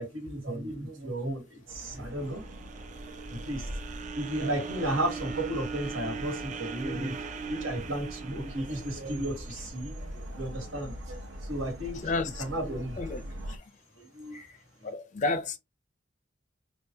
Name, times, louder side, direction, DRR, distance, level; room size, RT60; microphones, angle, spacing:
voice 1, 0.0-2.4 3.3-3.8 4.1-7.2 7.5-12.0 12.4-13.2 13.9-14.4 14.8-14.9, right 1 dB, 85° right, 1.6 m, -34 dB
sound 1, 1.7-13.6, equal, 65° right, 0.8 m, -43 dB
sound 2, 1.8-10.0, right 5 dB, 40° right, 0.4 m, -40 dB
voice 2, 12.0-12.4 13.0-13.2 13.5-13.6 14.3-14.5 14.8-15.6, left 3 dB, 40° left, 0.5 m, -31 dB
3.6 x 2.3 x 2.8 m
head